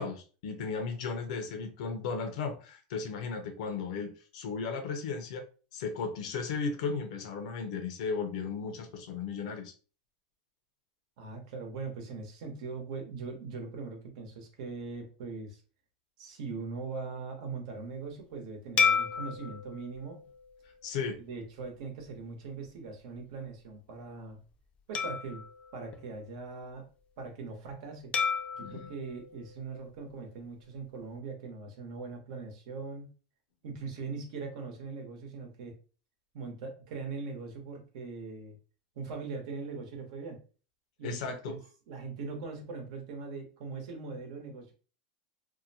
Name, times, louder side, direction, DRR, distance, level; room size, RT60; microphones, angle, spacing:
voice 1, 0.0-5.5 5.7-9.7 20.8-21.2 28.6-28.9 41.0-41.5, left 5 dB, 70° left, 0.6 m, -35 dB
voice 2, 11.2-15.6 16.2-20.2 21.2-24.4 24.9-25.4 25.7-26.9 27.2-28.1 28.5-33.1 33.6-35.8 36.3-38.6 39.0-40.4 41.0-41.6 41.9-44.7, right 4 dB, 65° right, 1.0 m, -41 dB
sound 1, 18.8-21.4 22.0-22.2 24.9-26.7 28.1-30.4, left 6 dB, 30° left, 0.4 m, -33 dB
2.7 x 2.1 x 2.7 m
supercardioid pair, 145°, 4 cm